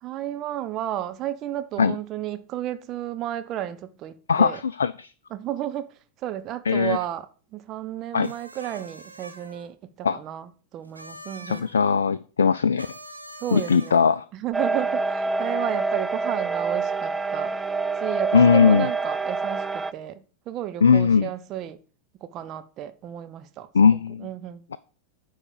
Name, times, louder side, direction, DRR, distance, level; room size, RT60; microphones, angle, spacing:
voice 1, 0.0-4.6 5.3-11.7 13.4-14.0 14.3-17.5 18.0-21.8 22.2-23.7 24.2-24.7, right 12 dB, 35° right, 0.7 m, -33 dB
voice 2, 4.3-5.1 6.7-7.0 8.1-8.3 10.0-10.2 11.5-12.9 13.5-14.2 18.3-18.9 20.8-21.3 23.7-24.3, left 6 dB, 70° left, 0.3 m, -19 dB
sound 1, 8.2-9.7 10.8-11.7 12.8-14.2, right 1 dB, 85° right, 1.0 m, -44 dB
sound 2, 14.5-19.9, right 4 dB, 10° right, 0.3 m, -26 dB
9.7 x 3.6 x 6.5 m
figure-of-eight pair, 90°, 0 cm